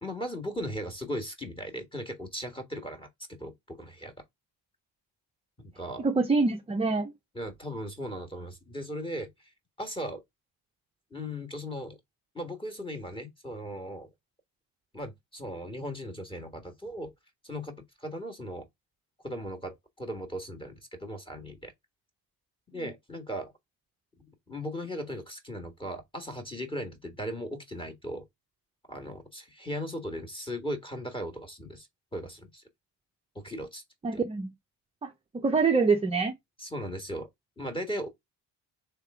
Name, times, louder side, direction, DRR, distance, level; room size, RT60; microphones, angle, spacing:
voice 1, 0.0-4.1 5.6-6.1 7.3-9.3 9.8-10.2 11.1-12.0 12.3-14.1 14.9-17.1 17.4-18.7 19.2-21.7 22.7-23.5 24.5-28.2 28.9-32.6 33.3-33.8 36.6-37.3 37.6-38.1, equal, 10° left, 1.4 m, -37 dB
voice 2, 6.0-7.1 34.0-34.5 35.0-36.3, right 4 dB, 15° right, 0.4 m, -25 dB
3.4 x 3.3 x 4.7 m
cardioid pair, 115°, 43 cm